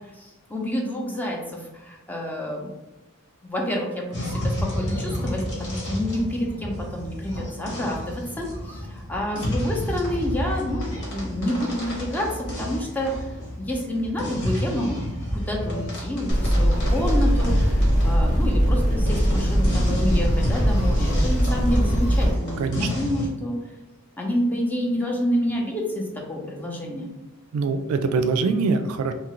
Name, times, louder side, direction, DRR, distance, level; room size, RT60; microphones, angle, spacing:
voice 1, 0.2-2.7 3.4-13.3 13.6-15.0 15.3-23.6 24.2-27.1, equal, 10° left, -1 dB, 0.5 m, -28 dB
sound 1, 4.1-23.3, left 1 dB, 55° left, 1.1 m, -30 dB
sound 2, 16.3-22.3, equal, 35° left, 0.8 m, -21 dB
voice 2, 22.6-22.9 27.5-29.1, right 4 dB, 80° right, 9 dB, 0.3 m, -23 dB
2.8 x 2.4 x 2.9 m, 1.0 s
head